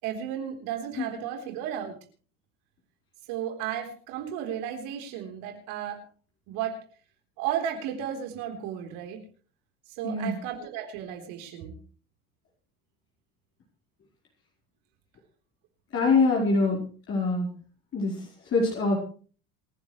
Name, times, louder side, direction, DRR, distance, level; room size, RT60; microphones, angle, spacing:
voice 1, 0.0-1.9 3.3-6.0 6.5-6.8 7.4-9.2 9.9-11.8, right 9 dB, 75° right, 3 dB, 4.1 m, -34 dB
voice 2, 15.9-17.5 17.9-19.0, left 3 dB, 40° left, -3 dB, 4.9 m, -24 dB
27.5 x 11.0 x 3.3 m, 0.41 s
supercardioid pair, 120°, 34 cm